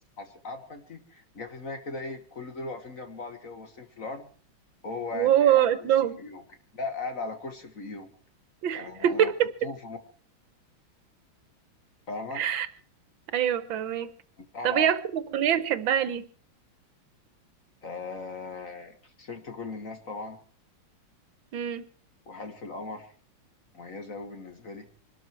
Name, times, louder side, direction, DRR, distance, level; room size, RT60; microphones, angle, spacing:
voice 1, 0.2-4.3 4.8-5.9 6.2-6.4 6.7-8.1 8.8-9.3 9.6-10.0 12.1-12.4 14.5-14.9 17.8-20.4 22.3-23.1 23.7-24.9, left 3 dB, 45° left, 7 dB, 1.8 m, -38 dB
voice 2, 5.1-6.2 8.6-9.5 12.3-12.7 13.3-14.1 14.6-16.3 21.5-21.9, right 10 dB, 70° right, 14 dB, 1.7 m, -24 dB
24.0 x 13.0 x 4.6 m, 0.43 s
omnidirectional pair, 2.3 m